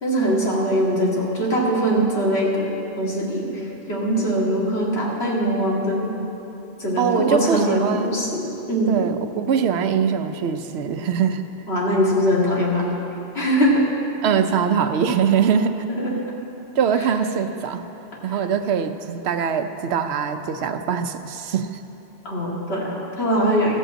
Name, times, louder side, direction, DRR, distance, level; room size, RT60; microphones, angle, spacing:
voice 1, 0.0-6.1 6.8-9.0 11.7-12.9 13.3-13.9 15.9-16.1 18.3-18.4 22.2-23.8, equal, 85° left, -5 dB, 2.3 m, -22 dB
voice 2, 7.0-8.2 8.9-11.4 14.2-15.9 16.7-17.8 18.2-21.7, right 7 dB, 85° right, 9 dB, 0.9 m, -22 dB
14.5 x 5.4 x 7.5 m, 3.0 s
omnidirectional pair, 1.1 m